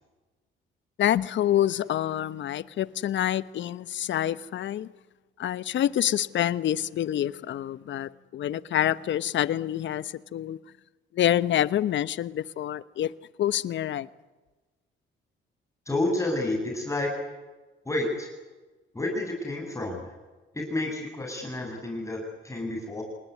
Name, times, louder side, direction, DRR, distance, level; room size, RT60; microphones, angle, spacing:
voice 1, 1.0-4.9 5.4-10.6 11.1-13.1 13.4-14.1, left 11 dB, 70° left, 1.1 m, -27 dB
voice 2, 15.9-17.1 17.9-18.3 18.9-20.1 20.5-23.0, left 2 dB, 15° left, 7.5 m, -30 dB
28.0 x 19.5 x 9.6 m
cardioid pair, 90°, 20 cm